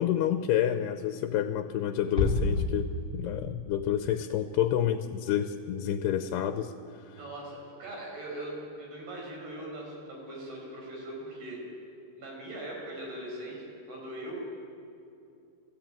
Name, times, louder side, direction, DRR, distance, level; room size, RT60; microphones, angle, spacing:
voice 1, 0.0-6.7, left 10 dB, 75° left, 9 dB, 2.7 m, -29 dB
Bass drum, 2.2-3.6, left 2 dB, 15° right, 3.7 m, -29 dB
voice 2, 7.2-11.6 12.2-14.3, right 1 dB, 60° right, -2 dB, 8.0 m, -40 dB
28.0 x 16.0 x 9.1 m, 2.5 s
omnidirectional pair, 5.0 m